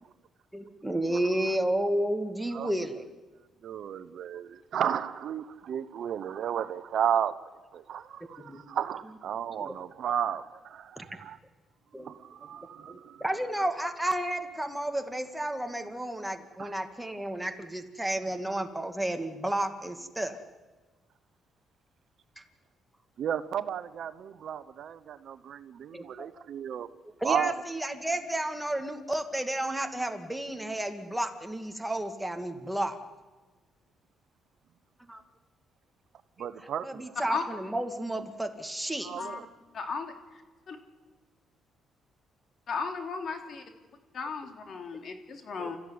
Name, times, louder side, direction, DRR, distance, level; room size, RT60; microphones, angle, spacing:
voice 1, 0.5-3.0 8.4-8.6 9.6-9.7 11.0-11.1 11.9-12.1 12.9-20.4 25.9-26.3 27.0-33.0 35.1-35.2 36.4-39.1 45.6-45.7, right 1 dB, 5° right, 2.3 m, -32 dB
voice 2, 3.6-7.3 7.7-11.4 12.0-13.2 16.6-16.7 23.2-26.9 27.2-27.5 36.4-37.1 39.0-39.4, right 9 dB, 65° right, 1.0 m, -33 dB
voice 3, 39.7-40.1 40.7-40.8 42.7-43.6 44.1-45.8, left 5 dB, 55° left, 3.2 m, -35 dB
29.0 x 14.0 x 9.7 m
cardioid pair, 90°, 0 cm